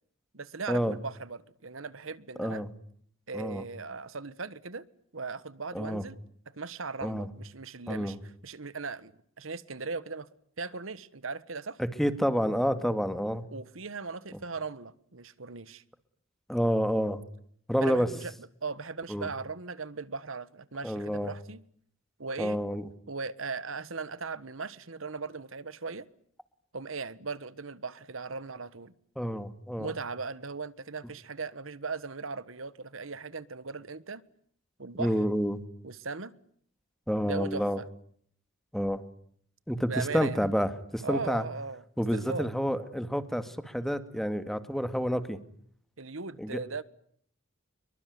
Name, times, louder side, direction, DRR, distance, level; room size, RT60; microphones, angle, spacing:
voice 1, 0.3-2.6 3.3-4.8 5.1-6.2 6.6-8.2 8.4-9.1 9.4-10.3 10.6-11.8 13.5-15.8 17.8-18.3 18.6-21.6 22.2-22.6 23.1-26.1 26.7-28.9 29.8-34.2 34.8-35.1 35.8-36.3 37.2-37.9 39.8-40.5 41.0-41.8 42.1-42.5 46.0-46.8, right 4 dB, 85° right, 17 dB, 1.5 m, -38 dB
voice 2, 3.3-3.6 5.7-6.0 7.0-7.3 7.9-8.2 11.8-13.4 16.5-17.2 17.7-18.1 19.1-19.3 20.8-21.3 22.4-22.9 29.2-29.9 35.0-35.6 37.1-37.8 38.7-39.0 39.7-41.4 42.0-45.4 46.4-46.6, equal, ahead, 11 dB, 2.0 m, -29 dB
26.5 x 23.5 x 9.5 m, 0.64 s
head